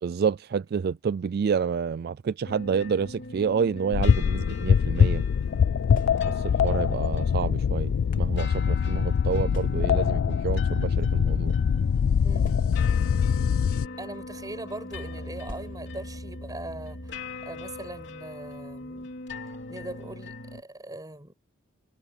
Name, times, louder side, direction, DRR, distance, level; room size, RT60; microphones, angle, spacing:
voice 1, 0.0-5.2 6.4-11.5, right 6 dB, 50° right, 0.3 m, -29 dB
sound 1, 2.4-20.6, left 2 dB, 60° left, 3.5 m, -41 dB
sound 2, 3.9-13.9, left 7 dB, 80° left, 0.3 m, -23 dB
sound 3, 5.9-6.6 7.4-8.4 9.5-10.1 11.0-11.2 11.4-11.5 12.4-13.1 14.0-14.2 15.4-16.1, equal, 45° left, 3.0 m, -43 dB
voice 2, 12.2-12.7 13.3-13.4 14.0-19.1 19.7-21.3, right 2 dB, 20° right, 6.2 m, -41 dB
head